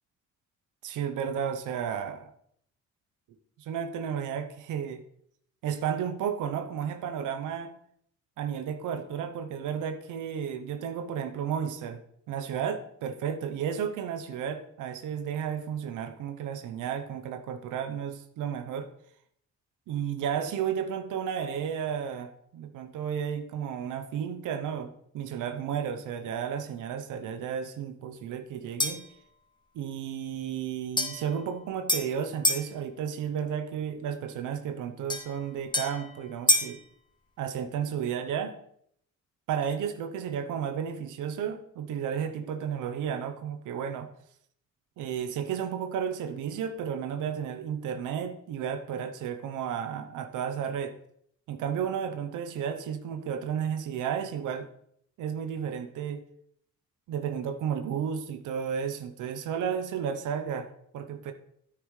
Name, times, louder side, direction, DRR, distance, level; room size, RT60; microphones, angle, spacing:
voice 1, 0.8-2.3 3.6-5.0 5.6-7.8 8.4-12.0 12.3-18.9 19.9-29.1 29.7-36.8 37.4-38.5 39.5-44.1 45.0-51.0 51.5-54.7 55.2-56.2 57.1-60.7 60.9-61.3, right 8 dB, 85° right, 8 dB, 0.8 m, -33 dB
sound 1, 28.8-29.2 31.0-32.7 35.1-36.8, left 1 dB, 15° left, 1.6 m, -29 dB
9.6 x 9.3 x 3.2 m, 0.69 s
cardioid pair, 90°, 30 cm